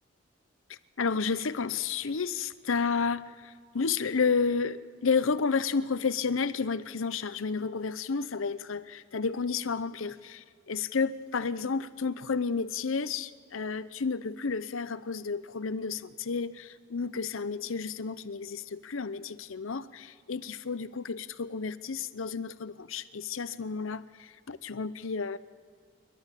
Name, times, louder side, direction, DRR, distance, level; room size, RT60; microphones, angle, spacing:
voice 1, 0.7-25.4, left 5 dB, 80° left, 15 dB, 0.7 m, -31 dB
28.5 x 12.0 x 8.2 m, 2.1 s
head